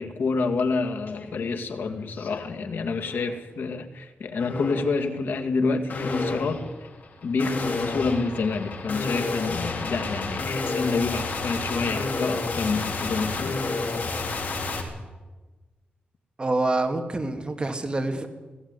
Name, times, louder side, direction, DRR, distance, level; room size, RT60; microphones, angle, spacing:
voice 1, 0.0-6.6 7.2-13.6, left 4 dB, 90° left, 6 dB, 2.2 m, -28 dB
sound 1, 1.1-1.2 1.7-2.4 2.9-3.3 4.4-5.0 5.9-14.8, left 3 dB, 55° left, 3.6 m, -30 dB
voice 2, 16.4-18.3, right 2 dB, 25° right, 5 dB, 2.4 m, -26 dB
19.5 x 15.5 x 9.8 m, 1.2 s
wide cardioid pair, 125°, 3 cm